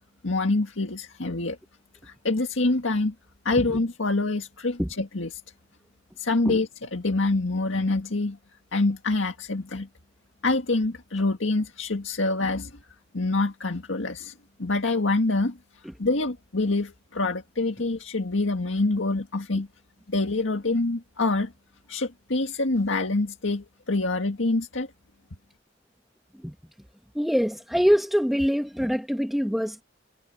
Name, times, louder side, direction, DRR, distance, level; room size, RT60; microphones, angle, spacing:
voice 1, 0.2-1.6 2.0-3.1 3.5-5.4 6.2-8.4 8.7-9.9 10.4-12.7 13.1-14.3 14.6-15.6 16.0-19.7 20.1-21.5 21.9-24.9, left 2 dB, 90° left, 1.8 m, -26 dB
voice 2, 27.1-29.8, equal, ahead, 1.4 m, -24 dB
head